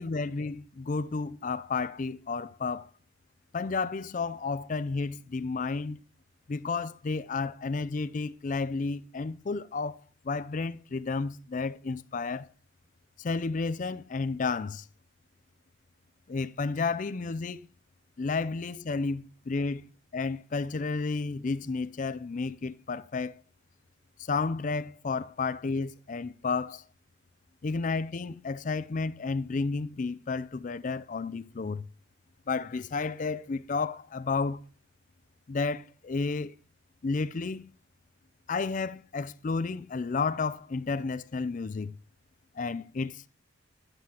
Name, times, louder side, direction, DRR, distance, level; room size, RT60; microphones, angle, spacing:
voice 1, 0.0-2.9 3.5-6.0 6.5-10.0 10.2-12.5 13.2-14.8 16.3-17.6 18.2-23.3 24.3-26.8 27.6-31.8 32.5-34.6 35.5-36.5 37.0-37.7 38.5-41.9 42.6-43.2, left 4 dB, 40° left, 0.4 m, -32 dB
11.5 x 9.0 x 2.9 m
head